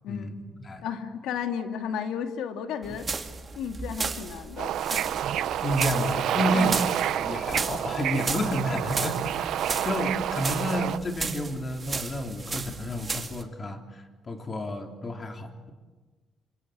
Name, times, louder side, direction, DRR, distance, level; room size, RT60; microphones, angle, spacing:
voice 1, 0.1-0.9 5.6-6.8 7.1-9.6 9.8-15.7, left 1 dB, 35° left, 4 dB, 3.7 m, -31 dB
voice 2, 0.8-3.3 3.5-5.1 6.5-6.7, left 7 dB, 90° left, 6 dB, 2.4 m, -33 dB
sound 1, 2.8-13.4, right 4 dB, 35° right, 2.4 m, -35 dB
Bird / Ocean, 4.6-11.0, right 11 dB, 80° right, 0.8 m, -29 dB
27.0 x 25.5 x 8.8 m, 1.4 s
cardioid pair, 90°, 0 cm